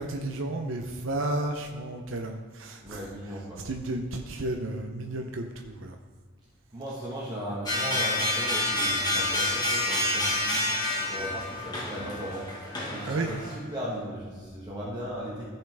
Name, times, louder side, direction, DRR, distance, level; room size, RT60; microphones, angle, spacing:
voice 1, 0.0-3.1 3.6-6.0 13.1-13.3, right 2 dB, 70° right, 3 dB, 0.6 m, -32 dB
voice 2, 2.8-3.6 6.7-15.4, equal, 20° right, -7 dB, 1.5 m, -37 dB
sound 1, 7.7-13.5, left 1 dB, 20° left, 1.6 m, -28 dB
14.5 x 5.6 x 3.5 m, 1.5 s
head